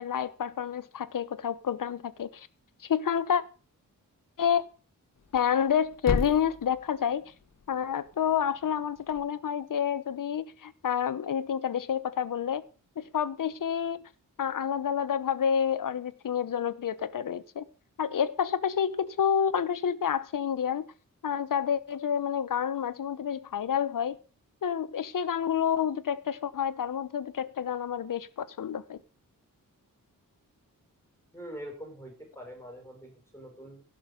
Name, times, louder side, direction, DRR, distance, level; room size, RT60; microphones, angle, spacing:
voice 1, 0.0-2.5 2.8-3.4 4.4-4.6 5.3-7.3 7.7-12.6 13.0-14.0 14.4-17.6 18.0-20.9 21.2-24.2 24.6-29.0, left 8 dB, 70° left, 1.0 m, -29 dB
Thump thud, 5.2-9.3, left 4 dB, 55° left, 1.4 m, -37 dB
voice 2, 31.3-33.8, equal, 10° left, 5.3 m, -44 dB
16.5 x 6.3 x 5.2 m
wide cardioid pair, 100°, 33 cm